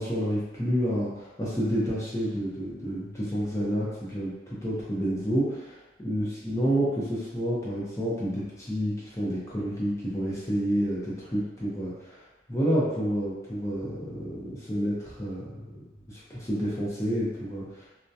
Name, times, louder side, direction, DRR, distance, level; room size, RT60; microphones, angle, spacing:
voice 1, 0.0-5.7 6.0-12.2 12.5-17.8, equal, 15° left, -8 dB, 0.6 m, -29 dB
2.2 x 2.1 x 2.6 m, 1.1 s
head